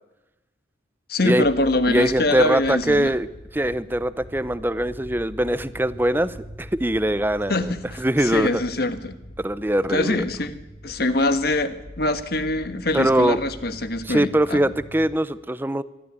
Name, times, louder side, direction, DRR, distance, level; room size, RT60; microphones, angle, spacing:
voice 1, 1.1-3.2 7.5-9.1 9.9-14.6, left 2 dB, 55° left, 10 dB, 1.4 m, -24 dB
sound 1, 1.4-15.2, equal, 40° left, 1.8 m, -43 dB
voice 2, 1.9-3.3 3.5-7.7 8.0-8.6 9.4-10.2 12.9-13.4 14.0-15.8, right 1 dB, 10° right, 15 dB, 0.6 m, -22 dB
25.0 x 12.5 x 9.5 m, 1.1 s
head